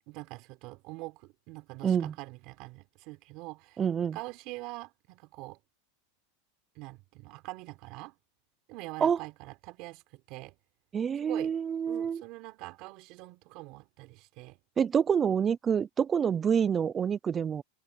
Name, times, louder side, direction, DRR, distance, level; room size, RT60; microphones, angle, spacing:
voice 1, 0.1-3.8 4.1-5.6 6.8-8.1 8.7-10.6 11.2-11.6 11.9-14.6, right 22 dB, 45° right, 3.8 m, -44 dB
voice 2, 1.8-2.1 3.8-4.2 9.0-9.2 10.9-12.2 14.8-17.6, right 7 dB, 20° right, 0.5 m, -27 dB
supercardioid pair, 145°, 0 cm